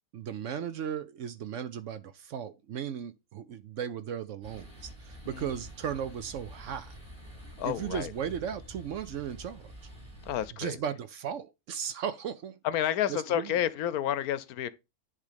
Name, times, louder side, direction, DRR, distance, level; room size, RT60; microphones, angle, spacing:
voice 1, 0.1-6.9 7.6-9.7 10.6-12.6 13.1-13.6, right 8 dB, 65° right, 0.8 m, -36 dB
sound 1, 4.4-10.5, equal, 35° right, 4.8 m, -48 dB
voice 2, 7.6-8.1 10.2-10.8 12.6-14.7, left 11 dB, 75° left, 1.1 m, -30 dB
10.0 x 3.4 x 5.0 m
omnidirectional pair, 1.6 m